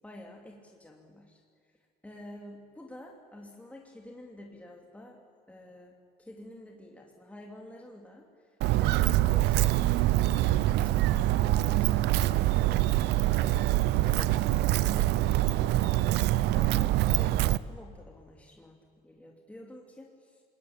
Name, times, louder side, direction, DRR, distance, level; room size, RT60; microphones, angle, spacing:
voice 1, 0.0-1.4 2.0-5.2 5.5-11.3 11.6-12.8 13.3-20.4, left 1 dB, 10° left, 0 dB, 3.0 m, -49 dB
Walk footsteps, 8.6-17.6, right 15 dB, 85° right, 0.7 m, -25 dB
26.5 x 21.5 x 8.8 m, 2.3 s
cardioid pair, 110°, 17 cm